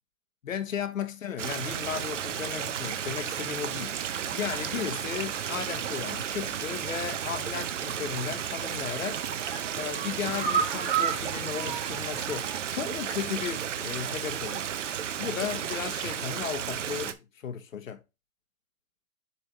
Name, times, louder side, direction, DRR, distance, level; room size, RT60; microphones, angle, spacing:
voice 1, 0.4-4.0 4.3-9.2 9.7-14.7 15.2-18.0, left 8 dB, 70° left, 1.2 m, -35 dB
Stream, 1.4-17.1, right 9 dB, 60° right, 0.8 m, -33 dB
sound 1, 8.6-8.9 9.3-12.7 13.0-13.1 13.5-13.6, right 7 dB, 35° right, 1.6 m, -32 dB
7.1 x 3.5 x 4.5 m
hypercardioid pair, 150°, 42 cm